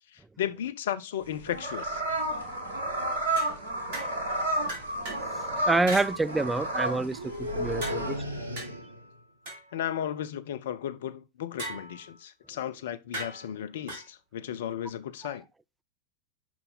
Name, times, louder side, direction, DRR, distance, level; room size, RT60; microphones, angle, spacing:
voice 1, 0.1-2.0 9.7-15.4, left 10 dB, 60° left, 0.5 m, -35 dB
sound 1, 1.2-8.2, right 1 dB, 70° right, 2.0 m, -32 dB
sound 2, 3.4-4.3 4.7-5.3 5.9-6.1 7.8-10.2 11.6-12.2 13.1-14.1, right 1 dB, 50° right, 3.0 m, -40 dB
sound 3, 4.6-4.8 5.1-5.4 7.1-9.1, left 1 dB, 90° left, 0.9 m, -35 dB
voice 2, 5.7-8.2 15.2-15.4, right 3 dB, 10° right, 0.4 m, -27 dB
6.0 x 5.4 x 4.0 m
figure-of-eight pair, 90°, 0 cm